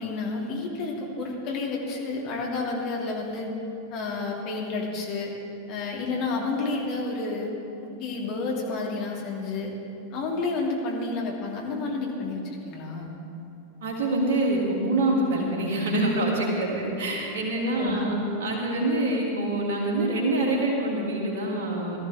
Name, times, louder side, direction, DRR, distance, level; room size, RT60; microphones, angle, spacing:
voice 1, 0.0-3.5 3.9-5.3 5.7-7.5 8.0-9.7 10.1-13.2 17.6-18.1, left 3 dB, 40° left, -2 dB, 2.7 m, -30 dB
voice 2, 13.8-22.0, right 1 dB, 55° right, -2 dB, 2.9 m, -25 dB
19.0 x 13.5 x 3.6 m, 2.7 s
figure-of-eight pair, 90°, 0 cm